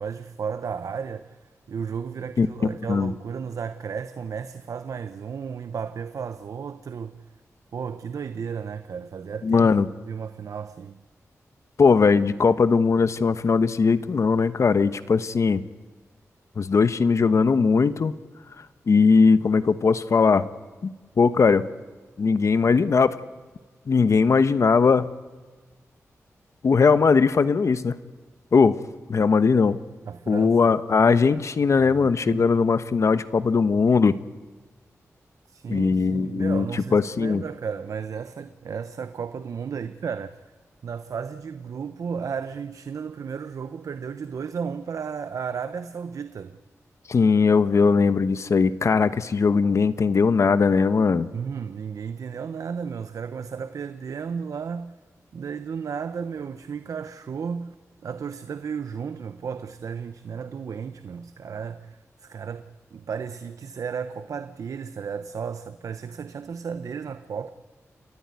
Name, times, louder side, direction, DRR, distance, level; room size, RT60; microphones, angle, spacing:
voice 1, 0.0-7.1 7.7-9.7 10.1-11.0 30.1-30.7 31.8-32.5 35.5-40.3 40.8-46.6 51.3-55.0 55.3-57.7 58.0-67.5, right 6 dB, 75° right, 0.8 m, -34 dB
voice 2, 9.4-9.9 11.8-15.6 16.6-18.2 18.6-20.4 20.8-21.7 22.2-23.2 23.9-25.1 26.6-28.0 28.5-28.8 29.1-29.8 30.3-34.2 35.7-37.4 47.1-51.3, left 5 dB, 60° left, 1.0 m, -20 dB
30.0 x 13.5 x 9.6 m
wide cardioid pair, 90°, 6 cm